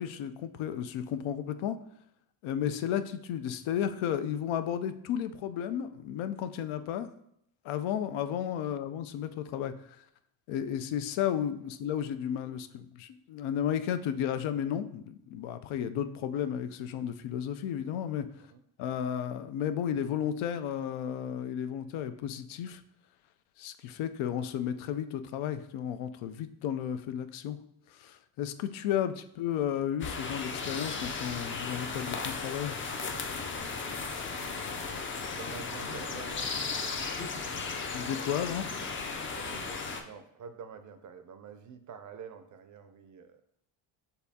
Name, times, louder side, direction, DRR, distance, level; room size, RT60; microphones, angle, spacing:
voice 1, 0.0-1.8 2.4-7.1 7.6-9.7 10.5-18.3 18.8-22.8 23.6-27.6 27.9-32.8 37.9-38.7, left 9 dB, 80° left, 10 dB, 0.5 m, -33 dB
sound 1, 30.0-40.0, left 4 dB, 25° left, 0.4 m, -36 dB
voice 2, 34.2-36.5 39.3-43.4, right 6 dB, 40° right, 8 dB, 0.4 m, -48 dB
6.5 x 2.7 x 2.7 m, 0.72 s
cardioid pair, 125°, 48 cm